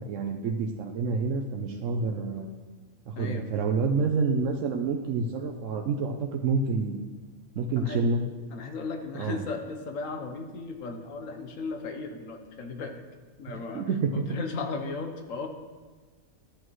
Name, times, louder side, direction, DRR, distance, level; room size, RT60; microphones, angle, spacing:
voice 1, 0.1-2.6 3.1-7.0 7.6-8.2 9.2-9.4 13.5-14.2, right 4 dB, 75° right, 3 dB, 1.0 m, -28 dB
voice 2, 3.2-3.5 7.8-8.0 8.5-13.0 13.4-15.5, left 4 dB, 90° left, 5 dB, 1.3 m, -36 dB
13.0 x 8.5 x 3.1 m, 1.4 s
omnidirectional pair, 1.3 m